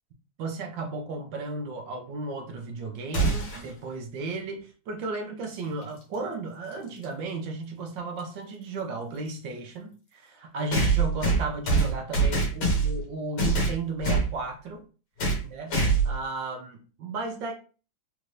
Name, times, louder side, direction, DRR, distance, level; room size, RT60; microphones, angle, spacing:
voice 1, 0.4-14.8 15.4-15.8 16.0-17.5, right 3 dB, 70° right, 2 dB, 1.3 m, -34 dB
sound 1, 3.1-3.7 5.8-5.9 7.0-7.1 10.7-13.0 13.4-14.3 15.2-15.4 15.7-16.2, right 3 dB, 60° left, 1.7 m, -24 dB
4.4 x 2.5 x 3.2 m, 0.36 s
omnidirectional pair, 2.2 m